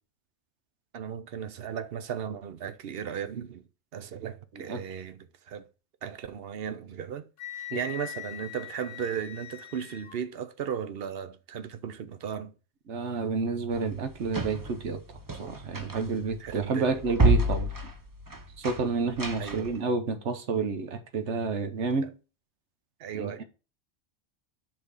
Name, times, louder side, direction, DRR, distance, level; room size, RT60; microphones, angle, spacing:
voice 1, 0.9-3.6 3.9-5.7 6.0-7.3 7.7-12.5 16.4-16.9 19.4-19.7 23.0-23.4, right 8 dB, 60° right, 0.9 m, -36 dB
Wind instrument woodwind instrument, 7.4-10.2, left 12 dB, 65° left, 1.0 m, -41 dB
voice 2, 12.9-15.0 15.4-17.7 18.6-22.1 23.1-23.4, right 4 dB, 80° right, 1.3 m, -30 dB
sound 1, 13.7-19.8, right 1 dB, 20° right, 0.8 m, -29 dB
6.0 x 4.2 x 6.3 m
omnidirectional pair, 1.2 m